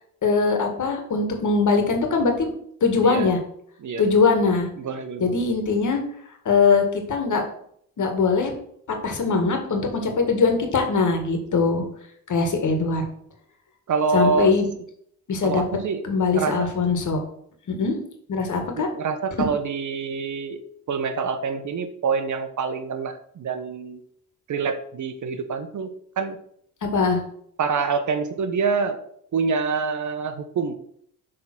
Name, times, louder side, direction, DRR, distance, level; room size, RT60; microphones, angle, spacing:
voice 1, 0.2-2.5 2.8-3.4 4.0-4.7 5.2-6.0 6.5-7.4 8.0-8.5 8.9-11.9 12.3-13.0 14.1-14.7 15.3-15.6 16.0-17.2 17.7-18.0 18.3-18.9 19.4-19.5 26.8-27.2, left 4 dB, 55° left, 4 dB, 1.8 m, -21 dB
voice 2, 4.8-5.4 13.9-14.5 15.4-16.0 16.3-16.7 18.8-20.6 20.9-24.0 24.5-25.9 26.2-26.4 27.6-29.0 29.3-30.7, right 5 dB, 55° right, 9 dB, 1.0 m, -26 dB
6.4 x 3.7 x 6.0 m, 0.67 s
supercardioid pair, 65°, 36 cm